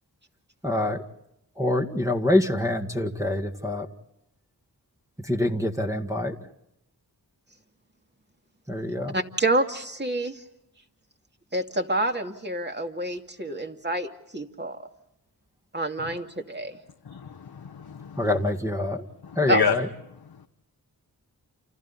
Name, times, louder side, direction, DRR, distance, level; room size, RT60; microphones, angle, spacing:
voice 1, 0.6-1.0 1.6-3.9 5.2-6.3 8.7-9.2 18.2-19.0 19.4-19.9, left 1 dB, 10° right, -2 dB, 1.9 m, -25 dB
voice 2, 9.1-10.4 11.5-14.8 15.7-16.8 19.5-19.6, right 2 dB, 25° right, 4 dB, 2.5 m, -28 dB
voice 3, 17.0-18.3 19.2-19.8 20.3-20.5, left 6 dB, 85° left, 3 dB, 1.2 m, -29 dB
29.0 x 29.0 x 4.2 m, 0.83 s
wide cardioid pair, 55°, 39 cm